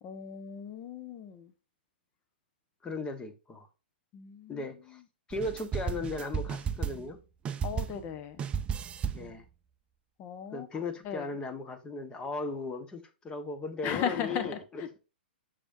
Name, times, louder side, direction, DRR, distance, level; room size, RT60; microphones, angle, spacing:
voice 1, 0.0-1.5 4.1-5.0 7.6-8.4 10.2-11.3 13.8-15.0, left 8 dB, 30° left, 1.2 m, -37 dB
voice 2, 2.8-3.7 4.5-5.0 5.3-7.2 9.1-9.4 10.5-14.9, left 3 dB, 15° left, 1.4 m, -37 dB
sound 1, 5.3-7.2 7.4-8.1 8.4-9.3, right 7 dB, 20° right, 0.5 m, -34 dB
7.0 x 6.8 x 2.7 m
figure-of-eight pair, 110°, 6 cm